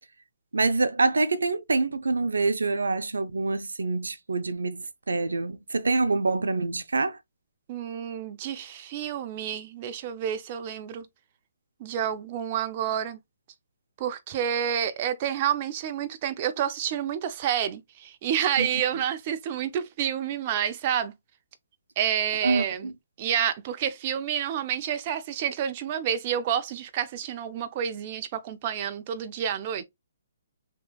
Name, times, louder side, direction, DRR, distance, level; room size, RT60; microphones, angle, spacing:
voice 1, 0.5-7.2 18.6-18.7 22.4-22.9, right 3 dB, 90° right, 0.5 m, -26 dB
voice 2, 7.7-11.1 11.8-13.2 14.0-21.1 22.0-22.9 23.2-29.8, right 9 dB, 35° right, 0.4 m, -29 dB
3.1 x 3.0 x 2.3 m
hypercardioid pair, 145°, 0 cm